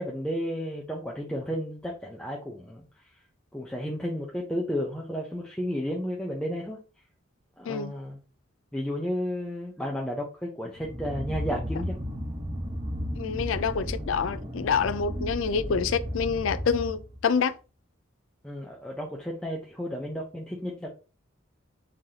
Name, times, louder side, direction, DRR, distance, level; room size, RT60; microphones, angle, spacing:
voice 1, 0.0-2.9 3.5-6.8 7.6-8.2 8.7-12.0 18.4-20.9, equal, 5° left, 0.5 m, -32 dB
sound 1, 10.7-17.3, equal, 30° right, 1.0 m, -34 dB
voice 2, 13.2-17.6, left 6 dB, 75° left, 0.4 m, -27 dB
3.8 x 3.2 x 2.8 m
head